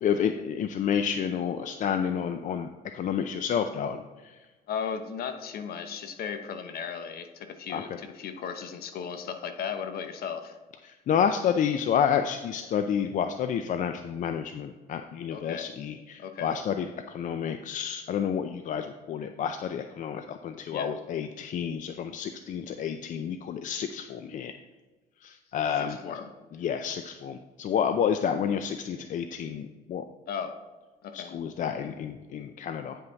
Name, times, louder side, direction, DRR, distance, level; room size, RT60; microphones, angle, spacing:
voice 1, 0.0-2.7 2.9-4.0 7.7-7.8 11.1-24.5 25.2-26.0 26.6-30.0 31.1-33.0, left 8 dB, 50° left, 8 dB, 0.5 m, -29 dB
voice 2, 4.7-10.6 15.3-15.7 16.2-16.5 20.7-21.0 25.7-26.3 30.3-30.6 31.0-31.4, left 7 dB, 65° left, 8 dB, 1.0 m, -36 dB
9.3 x 5.7 x 4.0 m, 1.2 s
cardioid pair, 110°, 17 cm